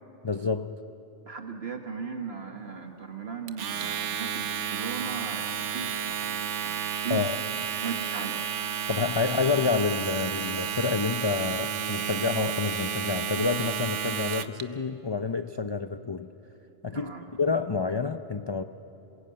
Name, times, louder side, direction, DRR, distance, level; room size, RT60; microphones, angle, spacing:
voice 1, 0.2-0.7 7.1-7.4 8.9-16.3 16.8-17.1 17.4-18.6, left 4 dB, 30° left, 8 dB, 0.5 m, -28 dB
voice 2, 1.2-7.4 7.8-8.4 16.9-17.3, right 5 dB, 60° right, 4 dB, 1.6 m, -37 dB
Domestic sounds home sounds, 3.5-14.6, right 8 dB, 85° right, 1.1 m, -32 dB
26.5 x 21.5 x 8.8 m, 2.9 s
omnidirectional pair, 1.2 m